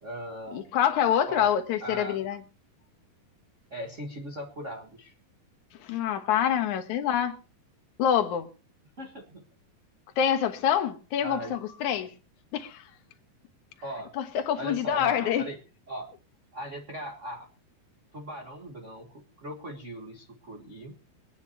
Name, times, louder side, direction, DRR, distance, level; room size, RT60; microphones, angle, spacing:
voice 1, 0.0-0.7 1.3-1.5 1.8-2.2 3.7-5.1 9.0-9.4 11.2-11.6 13.8-14.1 14.5-15.6 15.9-16.1 16.5-17.5 18.1-21.0, right 1 dB, 45° right, 0.9 m, -39 dB
voice 2, 0.5-2.4 5.8-7.4 8.0-8.5 10.2-12.1 12.5-12.8 14.2-15.5, left 9 dB, 65° left, 2.4 m, -26 dB
24.5 x 9.7 x 2.9 m
omnidirectional pair, 4.2 m